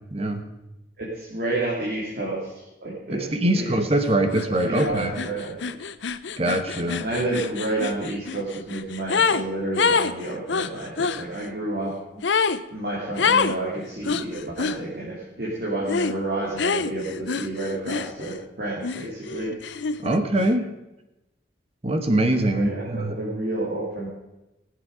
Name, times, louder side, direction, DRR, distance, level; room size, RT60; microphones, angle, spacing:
voice 1, 0.1-0.4 3.1-5.2 6.4-7.0 20.0-20.7 21.8-23.2, right 1 dB, 30° right, 7 dB, 1.2 m, -23 dB
voice 2, 1.0-3.8 4.5-5.8 7.0-11.9 12.7-19.8 22.5-24.1, right 2 dB, 50° right, -6 dB, 3.1 m, -30 dB
sound 1, 4.3-4.5 4.7-9.4 9.7-11.2 12.2-12.6 13.2-13.6 14.0-14.8 15.9-16.2 16.6-18.4 18.8-20.2, left 5 dB, 70° left, 0.6 m, -26 dB
19.0 x 8.2 x 5.0 m, 0.95 s
head